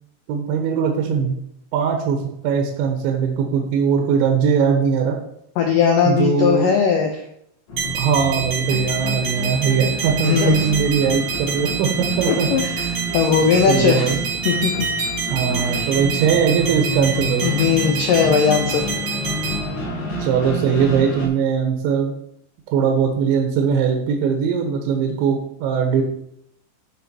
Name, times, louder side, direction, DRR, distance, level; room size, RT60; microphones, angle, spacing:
voice 1, 0.3-1.4 1.7-2.2 2.4-5.2 6.1-6.7 7.9-12.5 13.7-14.2 15.3-17.5 20.2-22.1 22.7-26.0, right 6 dB, 90° right, 2 dB, 3.5 m, -20 dB
voice 2, 5.6-7.2 10.2-10.6 12.5-14.2 14.5-14.9 15.6-15.9 17.4-18.8, left 6 dB, 85° left, 2 dB, 1.9 m, -19 dB
sound 1, 7.7-21.3, equal, 55° left, 3.7 m, -29 dB
sound 2, 7.8-19.6, right 5 dB, 65° right, 6.5 m, -27 dB
13.5 x 5.3 x 4.4 m, 0.74 s
omnidirectional pair, 5.2 m